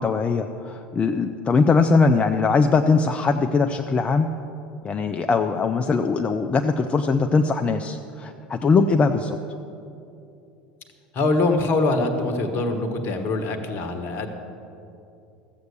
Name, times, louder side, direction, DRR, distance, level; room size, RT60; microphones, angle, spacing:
voice 1, 0.0-4.3 4.8-9.4, left 4 dB, 25° left, 6 dB, 0.5 m, -21 dB
voice 2, 11.1-14.3, left 2 dB, 45° left, 7 dB, 1.4 m, -23 dB
14.0 x 7.9 x 6.9 m, 2.7 s
figure-of-eight pair, 75°, 5 cm